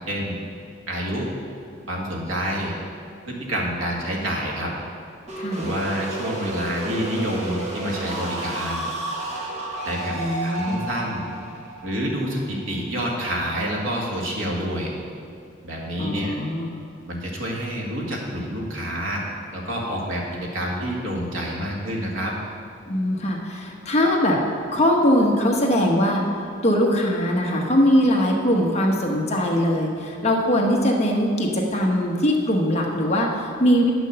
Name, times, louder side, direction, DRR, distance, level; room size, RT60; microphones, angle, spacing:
voice 1, 0.1-0.4 0.9-1.3 1.9-2.7 3.3-4.7 5.6-8.9 9.8-10.1 10.4-11.3 11.8-14.9 15.6-16.3 17.1-19.2 19.5-22.3, equal, 85° right, -2 dB, 2.0 m, -28 dB
sound 1, 5.3-13.0, right 1 dB, 35° right, 1.6 m, -32 dB
voice 2, 5.4-5.7 10.1-10.8 16.0-16.7 22.8-24.4 24.7-26.2 26.6-33.9, equal, 35° left, -1 dB, 1.2 m, -21 dB
9.6 x 6.2 x 6.7 m, 2.3 s
head